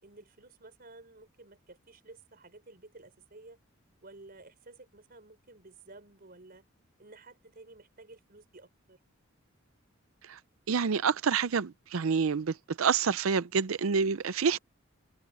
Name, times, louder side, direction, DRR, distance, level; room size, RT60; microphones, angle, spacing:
voice 1, 0.0-3.6 4.0-6.6 7.0-9.0, right 2 dB, 45° right, 4.5 m, -53 dB
voice 2, 10.7-14.6, right 6 dB, 80° right, 0.5 m, -28 dB
head